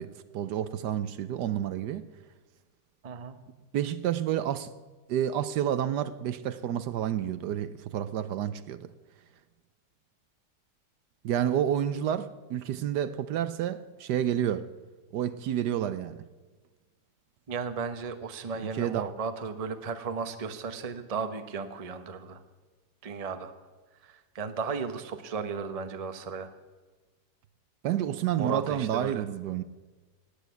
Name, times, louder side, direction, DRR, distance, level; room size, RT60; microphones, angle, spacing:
voice 1, 0.0-2.0 3.7-4.7 5.1-8.9 11.2-14.7 15.1-16.2 18.5-19.0 27.8-29.6, right 10 dB, 75° right, 1.2 m, -30 dB
voice 2, 3.0-3.4 17.5-22.4 23.0-23.5 24.0-26.5 28.4-29.2, right 5 dB, 30° right, 0.8 m, -35 dB
18.5 x 8.3 x 8.1 m
omnidirectional pair, 1.9 m